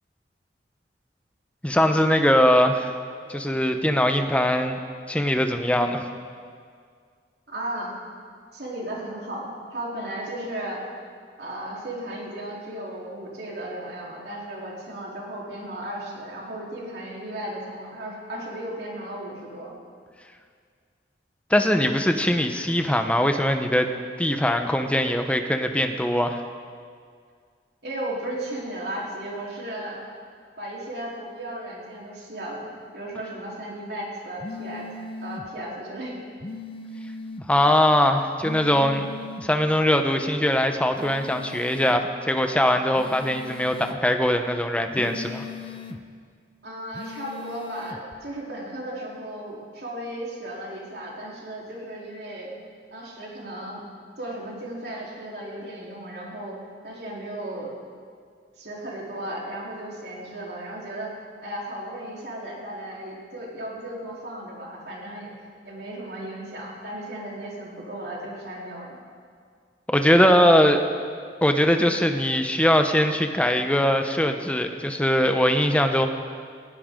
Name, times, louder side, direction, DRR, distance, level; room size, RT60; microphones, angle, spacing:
voice 1, 1.6-2.9 3.3-4.8 5.1-6.1 21.5-23.9 24.2-26.4 37.5-39.1 39.4-45.4 69.9-70.8 71.4-76.1, equal, 5° left, 6 dB, 0.9 m, -21 dB
voice 2, 7.5-7.9 8.5-10.8 11.4-19.8 27.8-30.0 30.6-34.9 35.2-36.2 46.6-52.5 52.9-53.8 54.2-56.6 56.8-57.7 58.6-61.2 61.4-65.3 65.6-69.0, right 1 dB, 65° right, -4 dB, 3.6 m, -35 dB
sound 1, 34.4-35.5 36.4-37.5 38.4-39.5 40.9-42.0 42.9-44.0 44.9-46.0 46.9-48.0, left 3 dB, 30° left, 0.6 m, -39 dB
19.5 x 16.0 x 3.8 m, 2.1 s
head